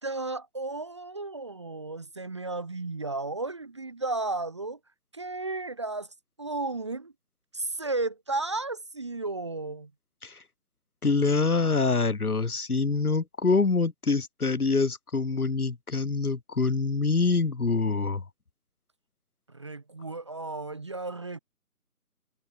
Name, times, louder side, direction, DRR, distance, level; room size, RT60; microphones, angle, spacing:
voice 1, 0.0-4.8 5.1-6.1 6.4-7.1 7.5-9.9 19.5-21.4, right 3 dB, 20° right, 1.2 m, -33 dB
voice 2, 11.0-18.2, left 4 dB, 70° left, 1.7 m, -25 dB
figure-of-eight pair, 160°, 47 cm